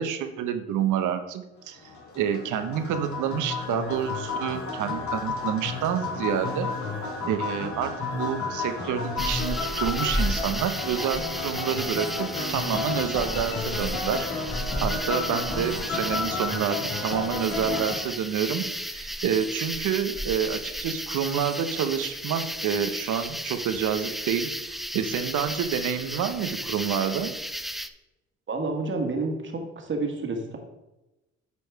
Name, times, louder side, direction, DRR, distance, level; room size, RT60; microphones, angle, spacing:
voice 1, 0.0-1.8 2.1-6.7 7.2-14.3 14.8-27.3, right 8 dB, 80° right, 9 dB, 0.9 m, -28 dB
sound 1, 1.8-18.0, left 4 dB, 70° left, 2.2 m, -32 dB
sound 2, 9.2-27.9, equal, ahead, 0.4 m, -33 dB
voice 2, 28.5-30.6, right 3 dB, 40° right, 3 dB, 1.6 m, -29 dB
8.4 x 4.7 x 4.7 m, 0.97 s
cardioid pair, 90°, 30 cm